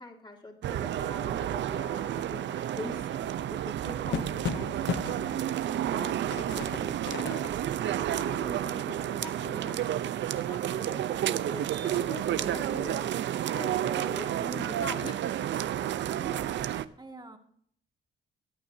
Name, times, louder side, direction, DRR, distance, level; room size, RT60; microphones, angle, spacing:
voice 1, 0.0-5.4 5.9-7.0 7.2-7.5 7.8-9.8 10.3-13.1 13.5-15.2, left 2 dB, 25° left, -2 dB, 3.3 m, -43 dB
sound 1, 0.6-16.9, right 11 dB, 65° right, 0.6 m, -31 dB
sound 2, 3.1-10.0 10.4-10.5 10.8-12.3, left 9 dB, 65° left, 0.8 m, -39 dB
voice 2, 16.2-16.7 17.0-17.4, right 2 dB, 20° right, 4 dB, 2.0 m, -46 dB
22.5 x 8.7 x 2.8 m, 0.62 s
cardioid pair, 90°, 20 cm